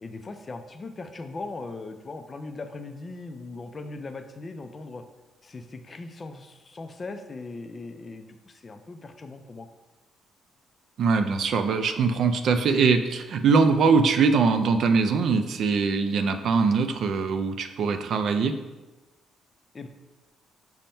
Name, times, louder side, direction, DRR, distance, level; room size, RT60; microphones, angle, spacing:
voice 1, 0.0-5.0 5.4-9.7 19.7-19.9, left 3 dB, 30° left, 7 dB, 0.3 m, -39 dB
voice 2, 11.0-18.6, right 5 dB, 60° right, 8 dB, 0.3 m, -22 dB
5.4 x 2.1 x 4.3 m, 1.1 s
cardioid pair, 140°, 0 cm